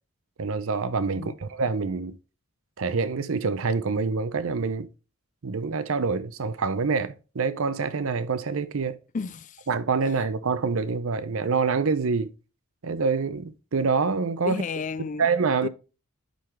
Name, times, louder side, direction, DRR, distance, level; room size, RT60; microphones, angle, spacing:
voice 1, 0.4-2.2 2.8-4.9 5.4-9.0 9.7-12.3 12.8-14.6 15.2-15.7, right 4 dB, 65° right, 0.6 m, -26 dB
voice 2, 9.1-9.7 14.4-15.3 15.6-15.7, left 5 dB, 35° left, 0.4 m, -32 dB
10.0 x 3.9 x 3.2 m
head